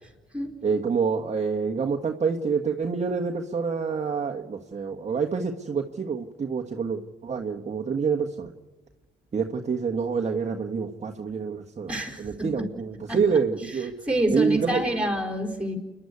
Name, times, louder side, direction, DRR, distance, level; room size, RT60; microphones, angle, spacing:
voice 1, 0.6-8.5 9.3-13.9 14.3-14.8, right 5 dB, 35° right, 2 dB, 1.5 m, -27 dB
voice 2, 11.9-12.5 13.1-13.2 14.1-15.8, right 1 dB, 5° right, 4 dB, 4.7 m, -27 dB
29.0 x 11.5 x 9.6 m, 1.1 s
cardioid pair, 90°, 20 cm